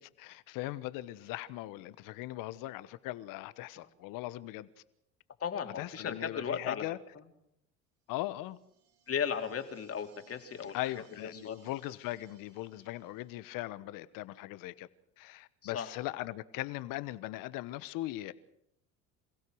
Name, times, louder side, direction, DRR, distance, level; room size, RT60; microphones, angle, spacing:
voice 1, 0.0-4.7 5.8-7.0 8.1-8.6 10.7-14.9 15.2-18.3, left 16 dB, 70° left, 1.2 m, -39 dB
voice 2, 5.4-6.8 9.1-10.8 11.2-11.6 15.6-15.9, left 7 dB, 45° left, 3.0 m, -35 dB
sound 1, 8.2-13.6, right 5 dB, 75° right, 7.5 m, -66 dB
27.5 x 16.5 x 6.4 m
supercardioid pair, 80°, 34 cm